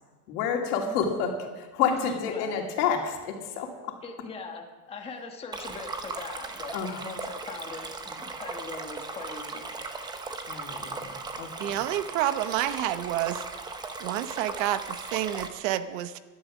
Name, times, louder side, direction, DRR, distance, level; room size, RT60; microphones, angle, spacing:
voice 1, 0.3-4.0 6.7-7.1 10.5-11.8, left 6 dB, 75° left, 2 dB, 2.9 m, -30 dB
voice 2, 1.8-2.6 4.0-6.7 7.0-9.7, left 4 dB, 15° left, 2 dB, 1.3 m, -40 dB
Stream, 5.5-15.5, right 3 dB, 10° right, 0.6 m, -38 dB
voice 3, 11.6-13.4 14.0-16.2, right 13 dB, 55° right, 12 dB, 0.9 m, -29 dB
17.5 x 11.5 x 6.2 m, 1.3 s
supercardioid pair, 160°, 46 cm